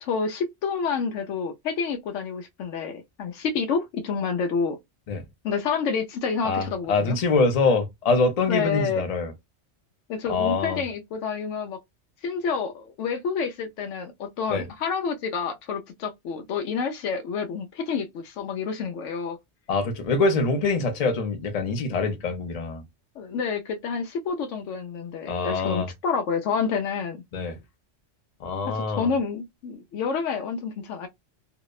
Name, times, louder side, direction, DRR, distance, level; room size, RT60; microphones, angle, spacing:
voice 1, 0.0-4.8 5.4-7.2 8.5-9.1 10.1-11.8 12.2-19.4 23.2-27.2 28.7-31.1, left 5 dB, 80° left, 0.9 m, -28 dB
voice 2, 6.4-9.3 10.3-10.8 14.5-14.6 19.7-22.8 25.3-25.9 27.3-27.6 28.4-29.1, left 3 dB, 45° left, 0.5 m, -24 dB
2.7 x 2.0 x 2.3 m
omnidirectional pair, 1.3 m